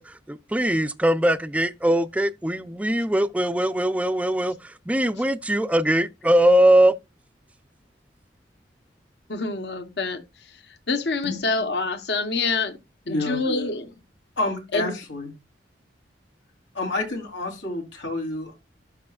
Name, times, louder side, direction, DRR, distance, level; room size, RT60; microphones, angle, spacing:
voice 1, 0.0-6.9, right 1 dB, 5° right, 0.5 m, -21 dB
voice 2, 9.3-10.2 10.9-12.8 13.1-13.9 14.7-14.9, left 3 dB, 65° left, 1.1 m, -26 dB
voice 3, 13.1-13.4 14.4-15.3 16.7-18.5, left 2 dB, 90° left, 3.3 m, -29 dB
12.5 x 5.0 x 2.4 m
head